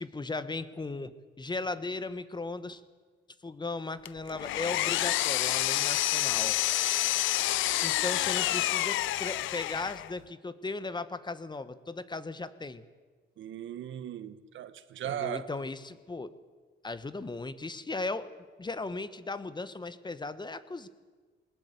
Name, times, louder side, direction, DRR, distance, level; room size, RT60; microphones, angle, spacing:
voice 1, 0.0-2.8 3.4-6.6 7.8-12.8 15.0-16.3 16.8-20.9, left 3 dB, 20° left, 1.4 m, -37 dB
Power tool, 4.0-10.1, left 15 dB, 80° left, 0.6 m, -28 dB
voice 2, 13.4-15.5, right 10 dB, 75° right, 1.4 m, -37 dB
21.0 x 19.5 x 8.4 m
cardioid pair, 90°, 20 cm